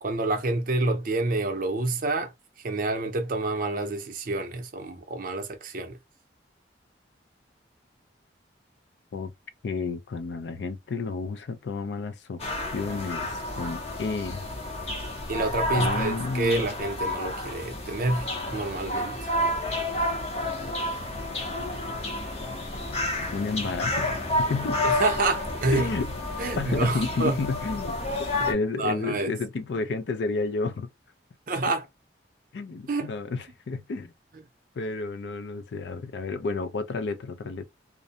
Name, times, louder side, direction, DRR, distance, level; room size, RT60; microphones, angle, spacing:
voice 1, 0.0-2.3 2.6-6.0 15.3-19.2 24.8-25.9 26.4-27.4 28.8-29.3 31.5-31.8 32.9-33.1, right 2 dB, 50° right, 0.5 m, -28 dB
voice 2, 9.6-14.4 15.8-16.7 23.3-24.9 25.7-26.2 26.6-30.9 32.5-34.1 34.8-37.6, left 4 dB, 70° left, 0.4 m, -31 dB
sound 1, 12.4-28.5, left 1 dB, 35° left, 0.7 m, -30 dB
2.5 x 2.1 x 2.7 m
head